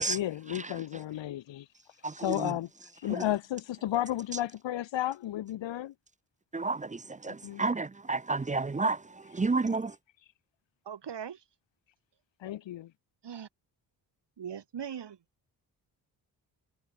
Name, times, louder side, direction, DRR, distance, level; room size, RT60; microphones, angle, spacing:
voice 1, 0.1-1.7 2.2-2.7 3.0-5.9 7.3-7.6 9.7-9.8 12.4-12.9, left 13 dB, 75° left, 1.4 m, -33 dB
voice 2, 7.6-9.0 9.4-9.8, right 3 dB, 15° right, 0.6 m, -28 dB
voice 3, 10.8-11.4 13.2-13.5 14.4-15.2, right 8 dB, 65° right, 4.5 m, -40 dB
supercardioid pair, 50°, 44 cm